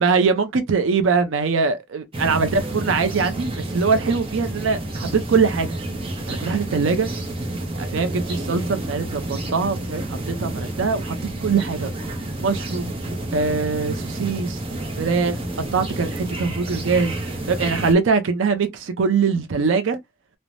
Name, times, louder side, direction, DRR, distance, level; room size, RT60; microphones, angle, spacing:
voice 1, 0.0-5.7 6.3-7.1 7.7-11.2 11.4-11.9 12.4-12.9 13.3-14.6 15.0-15.4 15.7-17.2 17.5-20.0, right 5 dB, 75° right, 0.5 m, -22 dB
sound 1, 2.1-17.9, right 1 dB, 25° right, 0.6 m, -29 dB
3.1 x 2.0 x 2.5 m
head